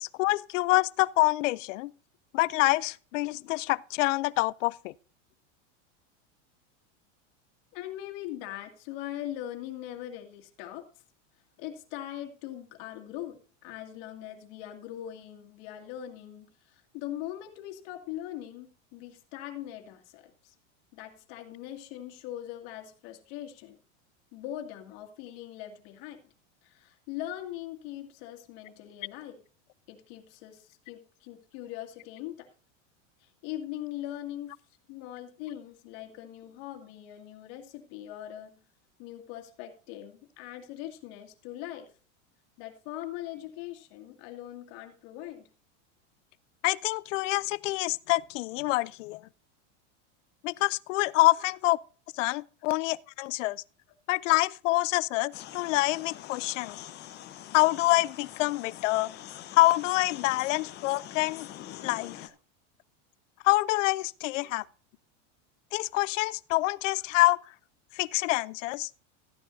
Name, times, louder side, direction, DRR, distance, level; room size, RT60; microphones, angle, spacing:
voice 1, 0.0-1.9 2.3-4.9 46.6-49.2 50.4-51.8 52.1-53.6 54.1-56.8 57.5-59.1 59.5-61.5 61.8-62.3 63.4-64.6 65.7-67.4 67.9-68.9, left 20 dB, 80° left, 0.5 m, -26 dB
voice 2, 7.7-10.8 11.6-20.5 20.9-23.8 24.3-26.3 26.6-29.4 29.9-32.5 33.2-34.5 34.9-38.5 39.0-41.9 42.6-45.5 59.4-59.5 64.3-64.4, left 12 dB, 50° left, 2.2 m, -41 dB
sound 1, 55.3-62.3, left 12 dB, 30° left, 0.8 m, -45 dB
14.0 x 10.0 x 2.6 m
supercardioid pair, 155°, 37 cm